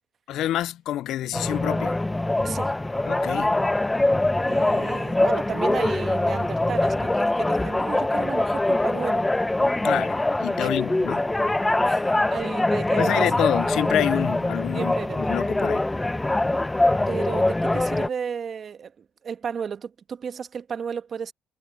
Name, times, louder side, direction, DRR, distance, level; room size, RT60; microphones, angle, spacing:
voice 1, 0.3-2.0 3.1-3.6 9.8-11.2 13.0-15.9, left 13 dB, 75° left, 0.3 m, -27 dB
sound 1, 1.3-18.1, left 2 dB, 10° left, 0.7 m, -23 dB
voice 2, 2.4-2.8 4.5-9.2 10.6-10.7 11.9-13.3 14.7-15.4 17.1-21.3, right 7 dB, 50° right, 1.5 m, -33 dB
cardioid pair, 95°, 0 cm